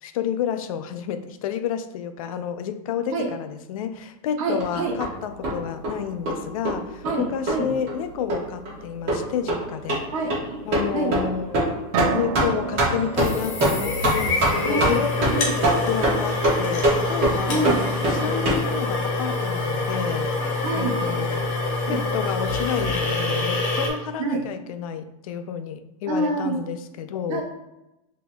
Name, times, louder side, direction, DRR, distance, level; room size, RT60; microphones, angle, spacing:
voice 1, 0.0-10.1 10.6-11.6 12.1-17.7 18.1-20.3 20.7-21.5 21.9-27.4, left 8 dB, 70° left, 9 dB, 0.4 m, -30 dB
voice 2, 4.4-5.0 7.0-7.7 10.1-10.6 10.9-11.1 14.6-15.0 15.3-15.5 17.5-17.8 20.6-21.0 21.9-22.0 24.2-24.4 26.1-26.6 27.3-27.4, right 2 dB, 70° right, 0 dB, 1.0 m, -26 dB
sound 1, 4.6-18.6, right 1 dB, 30° right, 1.2 m, -25 dB
sound 2, 11.9-15.7, right 5 dB, 85° right, 0.4 m, -33 dB
sound 3, 13.2-23.9, left 2 dB, 45° left, 1.1 m, -26 dB
5.9 x 2.8 x 2.2 m, 0.92 s
supercardioid pair, 170°, 18 cm